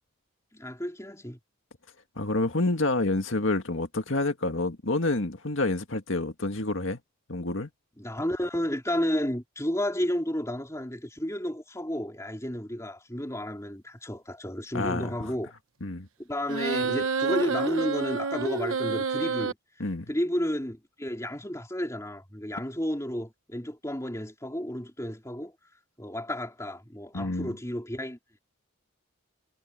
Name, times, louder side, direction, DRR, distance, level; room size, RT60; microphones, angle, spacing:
voice 1, 0.5-1.4 8.0-15.5 16.2-19.6 20.1-25.5 26.0-28.2, equal, 15° left, 3.5 m, -32 dB
voice 2, 2.2-7.0 7.3-7.7 14.7-15.3 15.8-16.1 19.8-20.1 27.1-27.5, left 2 dB, 65° left, 2.0 m, -28 dB
sound 1, 16.5-19.5, right 4 dB, 75° right, 1.2 m, -28 dB
head